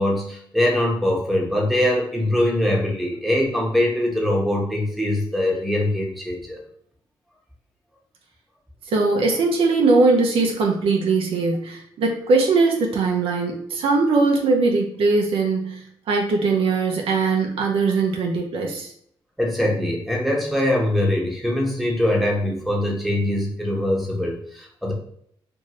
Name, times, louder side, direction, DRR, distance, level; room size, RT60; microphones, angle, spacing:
voice 1, 0.0-6.6 19.4-24.9, left 1 dB, ahead, -2 dB, 1.0 m, -22 dB
voice 2, 8.9-18.9, right 3 dB, 80° right, 1 dB, 0.5 m, -20 dB
2.6 x 2.5 x 3.0 m, 0.65 s
cardioid pair, 60°, 9 cm